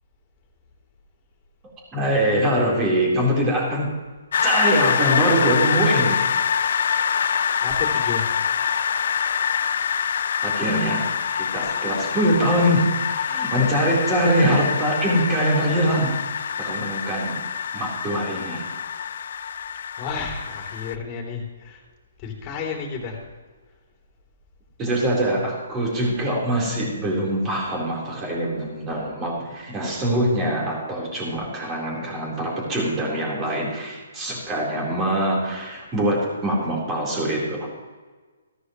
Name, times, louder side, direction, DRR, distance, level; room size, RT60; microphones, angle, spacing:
voice 1, 1.9-3.9 4.4-6.2 10.4-11.1 11.3-16.1 16.4-17.4 17.7-18.6 24.8-37.7, right 1 dB, 20° right, -3 dB, 4.1 m, -23 dB
sound 1, 4.3-20.9, left 7 dB, 60° left, 0.4 m, -25 dB
voice 2, 7.0-8.4 19.9-21.8 22.2-23.3 23.7-23.8, left 5 dB, 25° left, 0 dB, 3.1 m, -32 dB
15.0 x 13.0 x 3.2 m, 1.4 s
figure-of-eight pair, 135°, 0 cm